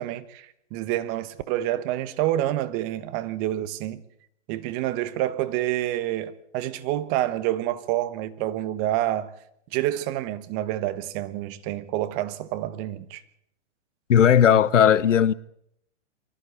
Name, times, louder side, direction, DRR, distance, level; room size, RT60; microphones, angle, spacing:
voice 1, 0.0-4.0 4.5-9.3 9.7-13.2, right 14 dB, 30° right, 1.2 m, -28 dB
voice 2, 14.1-15.3, left 9 dB, 85° left, 0.9 m, -17 dB
23.5 x 14.5 x 8.2 m
hypercardioid pair, 140°, 36 cm